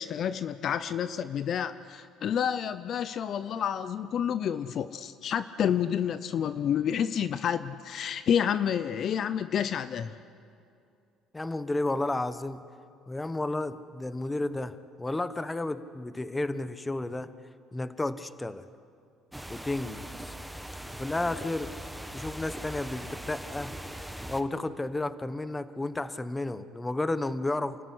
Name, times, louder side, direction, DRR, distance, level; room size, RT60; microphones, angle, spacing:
voice 1, 0.0-10.2, left 8 dB, 55° left, 13 dB, 0.7 m, -29 dB
voice 2, 11.3-12.6 13.1-17.4 17.7-18.7 19.5-20.3 20.9-21.7 22.1-23.8 24.3-27.8, left 2 dB, 15° left, 13 dB, 1.1 m, -32 dB
sound 1, 19.3-24.4, right 1 dB, 5° right, 1.3 m, -40 dB
28.0 x 14.0 x 10.0 m, 2.5 s
supercardioid pair, 85°, 0 cm